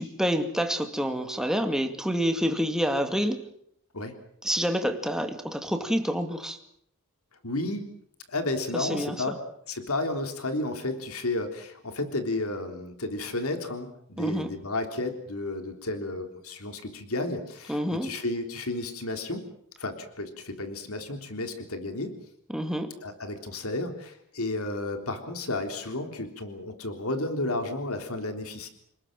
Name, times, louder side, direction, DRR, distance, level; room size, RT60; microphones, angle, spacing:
voice 1, 0.0-3.5 4.4-6.6 8.7-9.2 14.2-14.5 17.7-18.1 22.5-22.9, equal, 5° right, 6 dB, 2.3 m, -28 dB
voice 2, 7.4-7.9 8.3-9.3 9.7-19.4 19.8-22.1 23.0-28.7, left 2 dB, 70° left, 6 dB, 3.5 m, -32 dB
28.5 x 20.0 x 7.6 m, 0.70 s
head